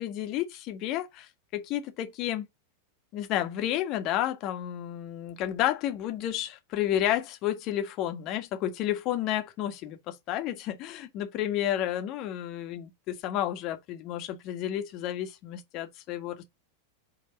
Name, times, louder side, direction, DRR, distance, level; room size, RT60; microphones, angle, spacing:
voice 1, 0.0-2.5 3.1-16.4, left 12 dB, 40° left, 1.6 m, -31 dB
5.6 x 4.0 x 5.3 m
figure-of-eight pair, 90°, 0 cm